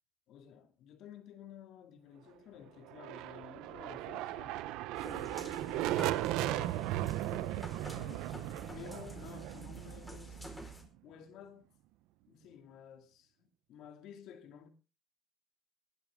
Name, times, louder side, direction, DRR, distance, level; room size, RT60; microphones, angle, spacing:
voice 1, 0.3-4.7 4.9-7.2 7.9-10.6 11.0-11.7 12.3-14.7, left 8 dB, 70° left, 2.3 m, -53 dB
sound 1, 2.9-10.6, right 15 dB, 85° right, 0.8 m, -37 dB
sound 2, 5.0-10.8, right 1 dB, 5° left, 4.5 m, -48 dB
20.0 x 11.5 x 3.7 m
cardioid pair, 125°, 0 cm